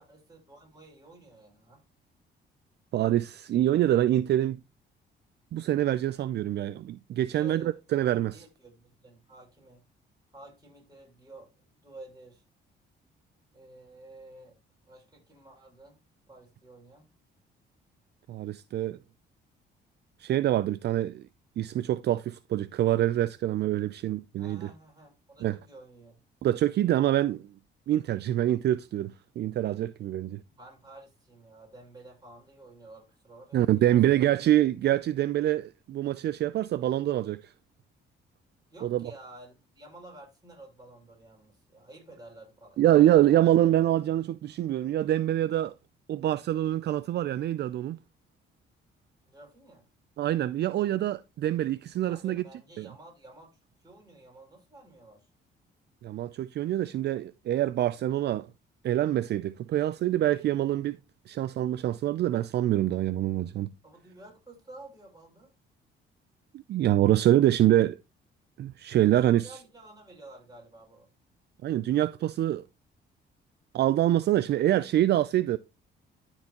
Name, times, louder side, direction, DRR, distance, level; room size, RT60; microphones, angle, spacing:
voice 1, 0.0-1.8 7.2-7.8 8.3-9.8 10.3-12.4 13.5-14.6 14.8-16.0 16.3-17.1 24.4-26.2 30.5-34.2 38.7-43.4 49.2-49.9 52.0-55.3 63.8-65.5 69.0-71.1, right 2 dB, 20° right, 5.3 m, -51 dB
voice 2, 2.9-4.6 5.5-8.3 18.3-19.0 20.2-21.2 21.6-24.7 25.4-25.6 26.4-27.4 27.9-30.4 33.5-37.5 38.8-39.1 42.8-45.7 46.1-48.0 50.2-52.4 52.8-52.9 56.0-58.5 58.8-61.0 61.3-63.7 66.5-68.0 68.6-69.5 71.6-72.6 73.7-75.6, right 13 dB, 60° right, 0.4 m, -25 dB
13.0 x 4.5 x 2.9 m
cardioid pair, 90°, 20 cm